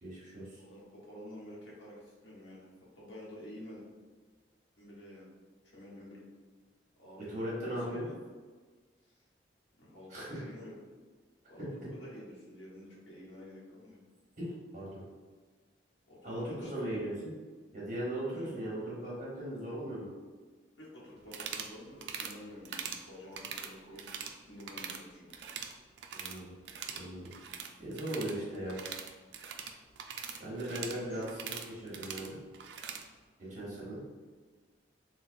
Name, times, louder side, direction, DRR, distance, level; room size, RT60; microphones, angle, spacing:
voice 1, 0.0-0.6 7.2-8.1 10.1-10.4 11.6-11.7 14.4-15.0 16.2-17.3 17.7-20.1 26.1-26.5 26.9-27.3 27.8-28.8 30.4-32.4 33.5-34.0, right 1 dB, 45° right, -6 dB, 1.2 m, -38 dB
voice 2, 0.6-2.7 2.9-3.9 4.8-5.3 5.6-6.2 7.0-8.1 9.0-9.2 9.8-10.9 11.5-14.0 16.1-16.7 18.4-18.6 20.8-24.0 24.5-25.3 27.5-27.7 30.6-31.3 33.4-33.7, left 1 dB, 85° left, -6 dB, 1.1 m, -50 dB
sound 1, 21.2-21.7 22.0-22.3 22.6-23.0 23.3-24.3 24.6-25.0 25.3-26.4 26.6-33.0, right 7 dB, 70° right, 0.3 m, -42 dB
3.8 x 2.2 x 2.5 m, 1.4 s
head